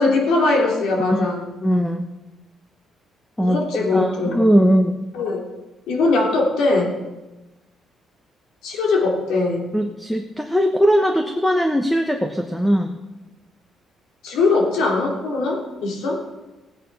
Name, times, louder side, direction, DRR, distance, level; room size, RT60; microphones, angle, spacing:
voice 1, 0.0-1.5 3.4-4.4 5.1-5.5 5.9-7.0 8.6-9.7 14.2-16.2, left 3 dB, 80° left, 0 dB, 3.3 m, -21 dB
voice 2, 1.6-2.1 3.4-3.6 3.9-5.0 9.7-13.0, equal, 5° left, 5 dB, 1.1 m, -19 dB
17.0 x 9.2 x 5.6 m, 1.1 s
cardioid pair, 110°, 0 cm